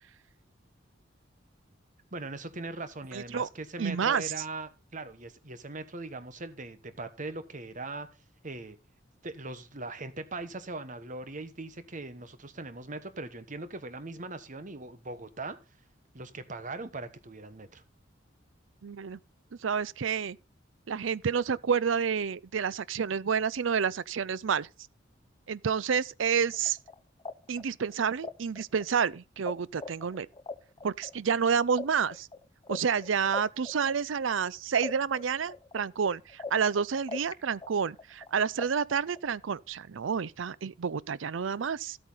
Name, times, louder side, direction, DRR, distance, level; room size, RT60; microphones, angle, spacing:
voice 1, 2.1-8.1 8.4-8.8 9.2-15.6 16.1-17.8, right 2 dB, 40° right, 1.3 m, -40 dB
voice 2, 3.1-3.5 3.8-4.3 18.8-19.2 19.6-20.4 20.9-24.7 25.5-26.8 27.5-30.3 30.8-32.3 32.7-42.0, right 6 dB, 85° right, 0.5 m, -29 dB
sound 1, 26.5-29.5 29.8-34.5 34.8-37.3 37.6-39.3, left 3 dB, 25° left, 0.8 m, -41 dB
13.0 x 8.7 x 4.0 m
head